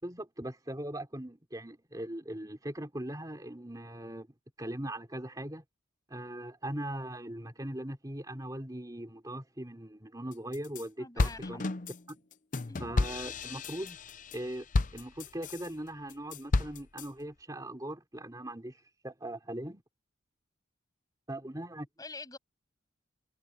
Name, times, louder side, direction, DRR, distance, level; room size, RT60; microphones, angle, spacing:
voice 1, 0.0-4.3 4.6-5.6 6.1-11.7 12.1-12.2 12.8-14.0 14.3-14.7 14.9-19.8 21.3-21.9, right 1 dB, 20° right, 3.4 m, -40 dB
sound 1, 10.3-10.8 11.2-15.7 16.1-17.1, left 3 dB, 40° left, 0.6 m, -32 dB
voice 2, 11.0-11.7 12.7-12.9 22.0-22.4, left 3 dB, 20° left, 7.3 m, -46 dB
head